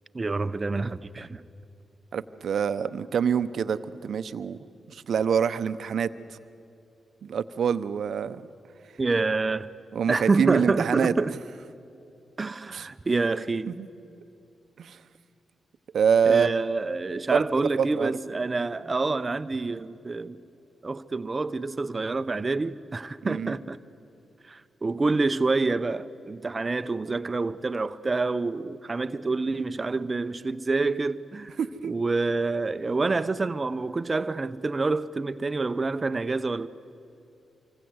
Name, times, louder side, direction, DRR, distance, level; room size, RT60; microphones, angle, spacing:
voice 1, 0.1-1.4 9.0-9.7 10.1-11.4 12.4-13.7 16.2-20.4 20.8-23.8 24.5-31.6 31.9-36.7, right 3 dB, 35° right, 0.8 m, -27 dB
voice 2, 2.1-4.6 4.9-6.1 7.2-8.5 9.9-11.1 12.7-12.9 13.7-13.9 14.8-15.0 15.9-16.5 17.3-18.2 23.2-23.6 31.6-31.9, right 7 dB, 70° right, 0.9 m, -26 dB
26.0 x 24.5 x 8.0 m
supercardioid pair, 45°, 0 cm